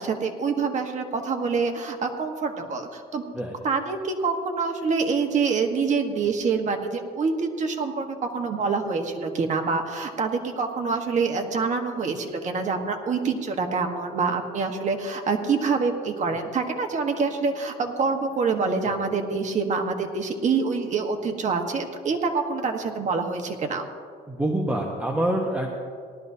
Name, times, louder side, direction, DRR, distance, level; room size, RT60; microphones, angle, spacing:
voice 1, 0.0-3.2 3.6-23.8, right 4 dB, 45° right, 4 dB, 1.4 m, -26 dB
voice 2, 24.3-25.7, right 1 dB, 10° right, 0 dB, 1.2 m, -26 dB
18.5 x 12.5 x 2.8 m, 2.2 s
cardioid pair, 110°, 17 cm